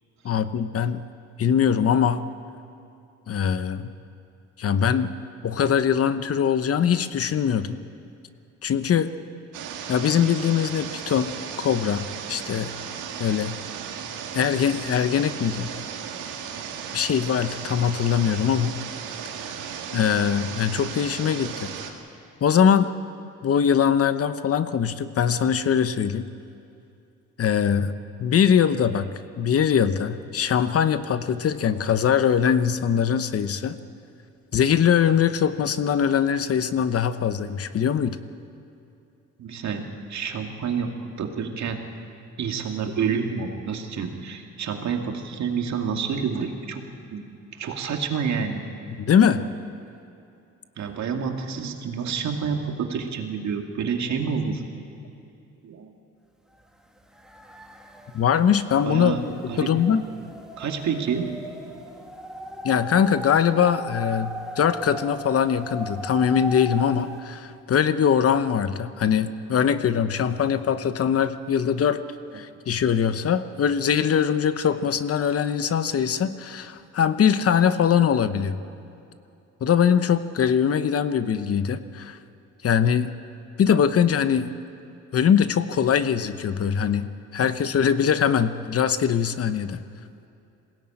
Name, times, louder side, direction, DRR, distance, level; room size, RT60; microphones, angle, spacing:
voice 1, 0.2-1.0 1.4-2.2 3.3-3.9 4.6-5.1 5.4-7.8 8.6-9.1 9.9-12.7 13.2-13.6 14.3-15.7 16.9-18.8 19.9-21.7 22.4-22.9 23.4-26.3 27.4-27.9 28.2-29.1 29.4-33.8 34.5-38.2 49.0-49.4 58.1-60.0 62.6-64.3 64.6-72.0 72.3-78.6 79.6-82.2 82.6-83.1 83.6-84.5 85.1-89.8, left 8 dB, 50° left, 12 dB, 0.9 m, -22 dB
sound 1, 9.5-21.9, right 7 dB, 90° right, 2.1 m, -35 dB
voice 2, 39.4-39.8 40.1-41.8 42.4-46.8 47.1-47.2 47.5-48.6 50.8-54.6 55.6-55.9 58.8-59.2 59.5-59.7 60.6-61.3, right 6 dB, 65° right, 3 dB, 2.4 m, -28 dB
sound 2, 56.6-56.7 57.0-67.2, right 1 dB, ahead, 2.0 m, -38 dB
21.0 x 17.5 x 8.9 m, 2.6 s
cardioid pair, 90°, 30 cm